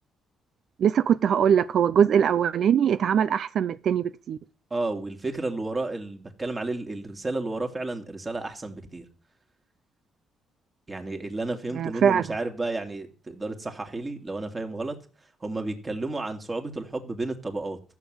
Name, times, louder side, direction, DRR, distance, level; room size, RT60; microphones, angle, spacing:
voice 1, 0.8-4.4 11.8-12.2, right 8 dB, 65° right, 0.6 m, -22 dB
voice 2, 4.7-9.0 10.9-14.9 15.4-17.8, right 2 dB, 25° right, 3.1 m, -32 dB
14.5 x 7.4 x 8.0 m
cardioid pair, 90°, 0 cm